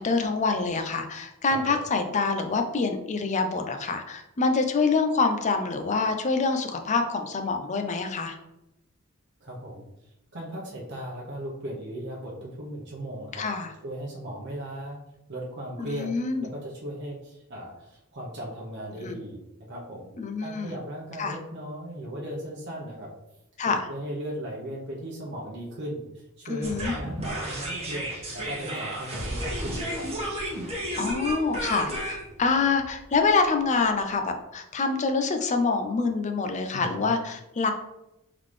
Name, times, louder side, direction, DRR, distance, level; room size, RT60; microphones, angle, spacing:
voice 1, 0.0-8.4 13.3-13.7 15.8-16.5 19.0-19.2 20.2-20.8 21.2-21.4 23.6-23.9 26.5-26.9 31.0-37.7, left 4 dB, 35° left, 6 dB, 0.5 m, -26 dB
voice 2, 9.4-13.4 13.8-15.0 15.3-16.1 16.4-19.4 19.7-20.1 20.4-23.1 23.7-30.1 36.7-37.1, right 1 dB, 55° right, -4 dB, 0.9 m, -37 dB
sound 1, 26.6-33.7, right 1 dB, 30° right, 1.2 m, -33 dB
3.8 x 3.7 x 3.2 m, 0.89 s
head